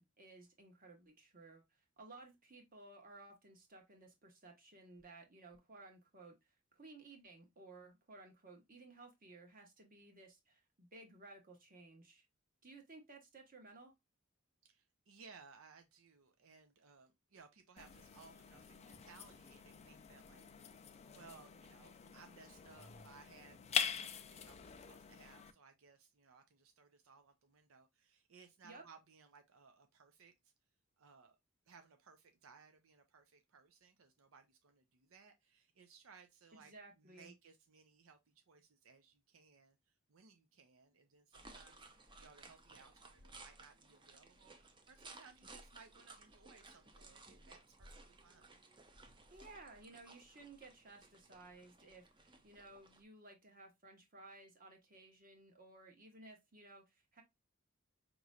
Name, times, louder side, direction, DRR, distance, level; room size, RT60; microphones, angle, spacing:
voice 1, 0.0-1.6 2.0-6.3 6.7-12.3 12.6-13.9 28.6-28.8 36.5-37.3 49.3-57.2, right 2 dB, 45° right, 1.4 m, -57 dB
voice 2, 14.6-30.5 31.0-31.4 31.7-44.6 44.9-48.6, right 5 dB, 85° right, 0.6 m, -62 dB
sound 1, 17.8-25.5, left 7 dB, 30° left, 0.5 m, -44 dB
sound 2, 41.3-53.0, right 2 dB, 25° right, 0.7 m, -59 dB
5.2 x 3.0 x 2.4 m
head